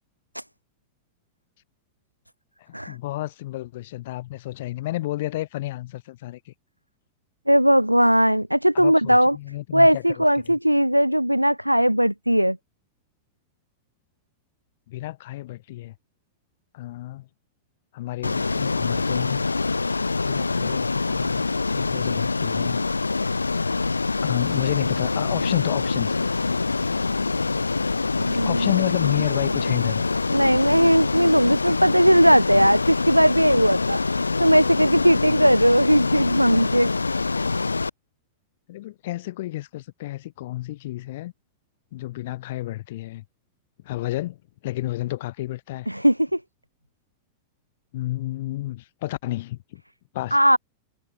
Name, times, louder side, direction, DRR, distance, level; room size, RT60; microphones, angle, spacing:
voice 1, 2.7-6.5 8.7-10.6 14.9-15.9 16.7-17.3 17.9-19.4 20.2-22.9 24.2-26.2 26.8-26.9 28.3-30.0 38.7-41.3 41.9-43.2 43.8-44.4 44.6-45.9 47.9-49.8 50.1-50.4, left 16 dB, 55° left, 6.5 m, -30 dB
voice 2, 7.5-9.4 9.7-12.6 28.2-28.7 30.3-36.9 45.9-46.4 50.3-50.6, equal, 90° right, 1.5 m, -18 dB
Ocean, 18.2-37.9, left 3 dB, 80° left, 3.8 m, -25 dB
figure-of-eight pair, 90°, 0 cm